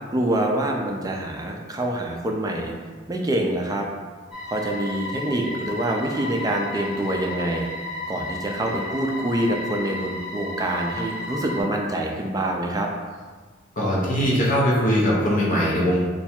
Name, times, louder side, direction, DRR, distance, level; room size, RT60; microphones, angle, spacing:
voice 1, 0.1-2.7 3.1-3.9 4.5-7.7 8.1-12.9, right 1 dB, 20° right, 1 dB, 0.4 m, -25 dB
sound 1, 4.3-11.6, left 1 dB, ahead, 0.8 m, -34 dB
voice 2, 13.8-16.1, equal, 40° left, -5 dB, 0.7 m, -21 dB
3.3 x 2.3 x 4.2 m, 1.5 s
head